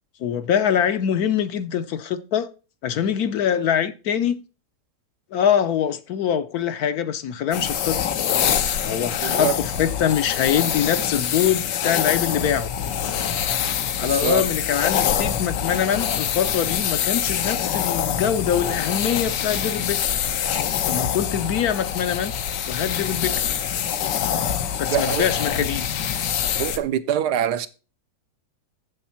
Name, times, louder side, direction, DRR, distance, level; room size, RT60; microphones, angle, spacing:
voice 1, 0.2-2.5 2.8-4.4 5.3-8.0 8.8-12.7 14.0-20.0 20.9-22.3 22.7-23.4 24.8-25.9, left 9 dB, 65° left, 1.1 m, -24 dB
sound 1, 7.5-26.8, left 9 dB, 85° left, 1.5 m, -25 dB
voice 2, 9.2-9.6 14.0-14.5 24.9-25.3 26.6-27.7, right 10 dB, 75° right, 1.2 m, -24 dB
7.3 x 7.2 x 5.7 m
omnidirectional pair, 1.8 m